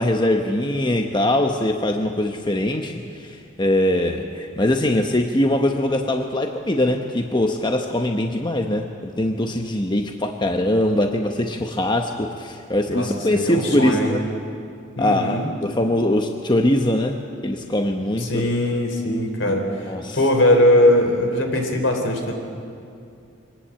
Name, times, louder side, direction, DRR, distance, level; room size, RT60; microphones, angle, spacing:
voice 1, 0.0-14.2 15.0-18.3 19.4-19.6 19.9-20.2, left 1 dB, 25° left, 4 dB, 1.0 m, -22 dB
voice 2, 12.9-14.1 15.0-15.5 18.2-22.3, left 1 dB, 70° left, 4 dB, 3.9 m, -20 dB
24.0 x 19.0 x 8.8 m, 2.5 s
head